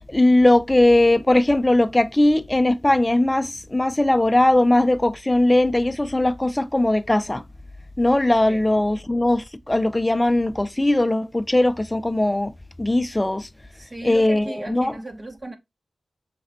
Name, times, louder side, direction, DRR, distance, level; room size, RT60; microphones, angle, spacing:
voice 1, 0.1-7.4 8.0-12.5 12.8-13.5 14.0-14.9, left 1 dB, 15° left, 0.4 m, -19 dB
voice 2, 13.7-15.6, right 2 dB, 35° right, 1.0 m, -36 dB
5.8 x 3.1 x 2.7 m
wide cardioid pair, 80°, 0 cm